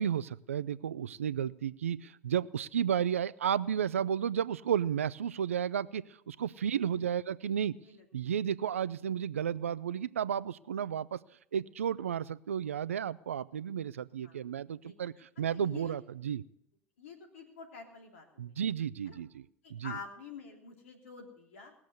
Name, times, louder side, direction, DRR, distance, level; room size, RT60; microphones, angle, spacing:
voice 1, 0.0-7.8 8.1-11.2 11.5-16.4 18.4-20.0, right 8 dB, 85° right, 19 dB, 0.5 m, -33 dB
voice 2, 6.7-7.0 7.8-8.0 14.2-14.4 14.8-15.0 15.5-16.0 17.0-18.4 19.1-19.2 19.6-21.7, left 5 dB, 80° left, 3 dB, 3.3 m, -48 dB
19.5 x 7.3 x 7.9 m, 0.74 s
hypercardioid pair, 75°, 7 cm